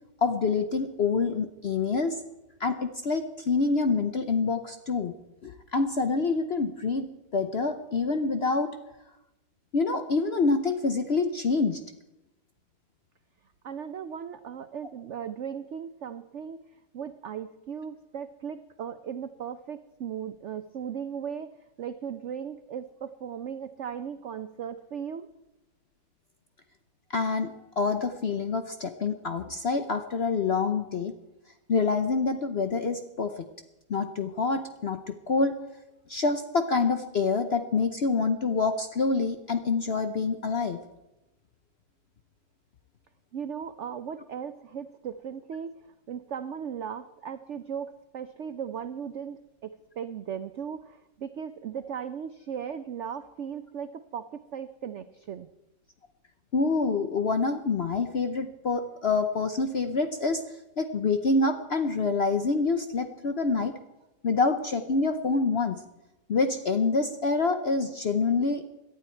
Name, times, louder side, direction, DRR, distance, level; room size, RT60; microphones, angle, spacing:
voice 1, 0.2-2.2 2.6-5.1 5.4-8.8 9.7-11.8 27.1-27.5 27.8-31.1 31.7-33.4 33.9-35.6 36.1-40.8 56.5-60.4 60.8-63.8 64.2-65.8 66.3-68.6, left 4 dB, 55° left, 8 dB, 0.7 m, -26 dB
voice 2, 13.6-16.6 16.9-21.5 21.8-25.3 43.3-45.8 46.1-55.5, right 8 dB, 85° right, 11 dB, 0.6 m, -37 dB
17.5 x 12.0 x 4.5 m, 0.96 s
omnidirectional pair, 2.0 m